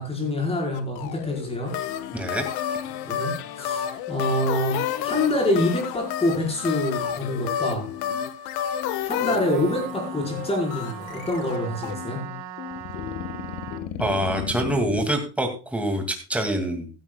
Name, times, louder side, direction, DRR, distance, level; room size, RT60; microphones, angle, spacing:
voice 1, 0.0-1.7 3.0-7.9 9.0-12.2, left 1 dB, 15° left, 1 dB, 4.7 m, -26 dB
sound 1, 0.7-13.9, left 11 dB, 80° left, 1.5 m, -38 dB
sound 2, 1.7-11.6 12.7-15.1, left 9 dB, 60° left, 1.4 m, -31 dB
voice 2, 2.1-2.5 14.0-16.9, right 1 dB, 5° right, 4 dB, 2.2 m, -25 dB
Trumpet, 9.4-13.9, right 8 dB, 75° right, 4.8 m, -39 dB
15.5 x 12.5 x 2.3 m, 0.34 s
cardioid pair, 165°, 43 cm